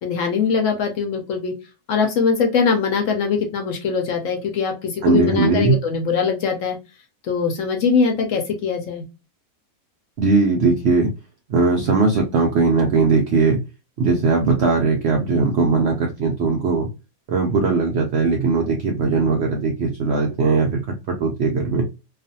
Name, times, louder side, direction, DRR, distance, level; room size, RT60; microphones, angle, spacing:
voice 1, 0.0-1.5 1.9-6.8 7.2-9.0, left 5 dB, 65° left, 3 dB, 0.8 m, -21 dB
voice 2, 5.0-5.8 10.2-11.1 11.5-13.6 14.0-16.9 17.3-21.9, right 4 dB, 75° right, 2 dB, 0.6 m, -19 dB
2.4 x 2.4 x 2.6 m, 0.28 s
omnidirectional pair, 1.6 m